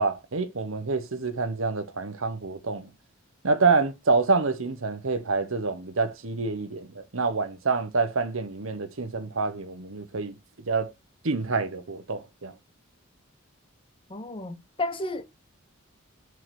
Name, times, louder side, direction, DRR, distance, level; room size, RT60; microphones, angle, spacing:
voice 1, 0.0-2.9 3.4-10.3 10.7-10.9 11.2-12.5, right 4 dB, 75° right, 1.1 m, -27 dB
voice 2, 14.1-15.2, left 2 dB, 25° left, 0.8 m, -32 dB
6.7 x 4.8 x 4.2 m
head